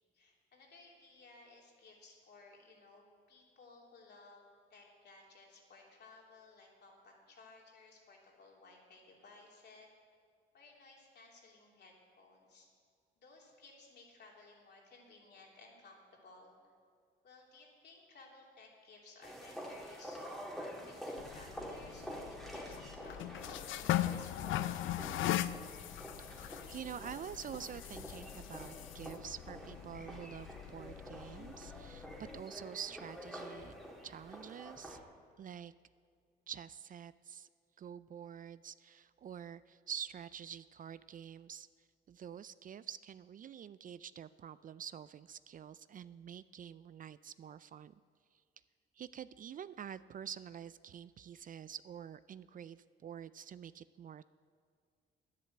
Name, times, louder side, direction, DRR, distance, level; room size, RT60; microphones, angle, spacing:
voice 1, 0.1-4.4 4.7-9.9 10.5-12.7 13.2-16.5 17.2-24.3, left 3 dB, 60° left, -2 dB, 3.3 m, -59 dB
sound 1, 19.2-35.0, equal, ahead, 2.3 m, -48 dB
sound 2, 21.2-32.4, left 13 dB, 80° left, 0.5 m, -40 dB
voice 2, 26.2-32.1 32.3-33.7 34.0-35.0 35.4-35.7 36.5-37.5 37.8-41.7 42.1-47.9 49.0-54.2, right 8 dB, 45° right, 16 dB, 0.4 m, -47 dB
10.5 x 10.5 x 7.9 m, 2.1 s
cardioid pair, 90°, 20 cm